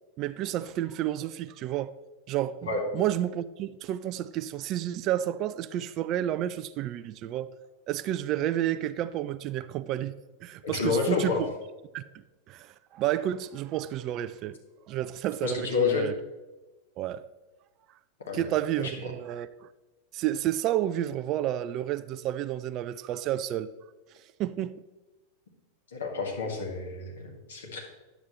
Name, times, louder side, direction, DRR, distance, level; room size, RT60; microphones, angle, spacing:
voice 1, 0.2-2.0 2.3-7.5 7.9-10.1 10.4-11.3 11.9-12.0 12.5-14.6 14.9-16.1 17.0-17.3 18.3-19.7 20.1-23.7 24.4-24.8, right 12 dB, 35° right, 0.3 m, -30 dB
voice 2, 10.6-11.4 15.4-16.1 18.3-18.4 18.8-18.9 25.9-27.8, left 5 dB, 65° left, 1.7 m, -29 dB
10.0 x 7.2 x 3.1 m
figure-of-eight pair, 90°, 0 cm